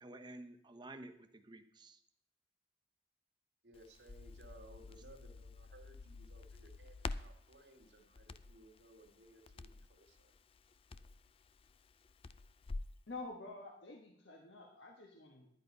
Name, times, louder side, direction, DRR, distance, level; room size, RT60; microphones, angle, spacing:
voice 1, 0.0-2.0, right 2 dB, 25° right, 7 dB, 0.9 m, -52 dB
voice 2, 3.6-10.3, right 1 dB, 70° right, 3 dB, 1.8 m, -61 dB
Crackle, 3.7-13.0, left 3 dB, 30° left, 0.4 m, -49 dB
voice 3, 13.1-15.6, left 3 dB, 80° left, 1 dB, 1.5 m, -49 dB
10.5 x 10.0 x 5.4 m, 0.70 s
head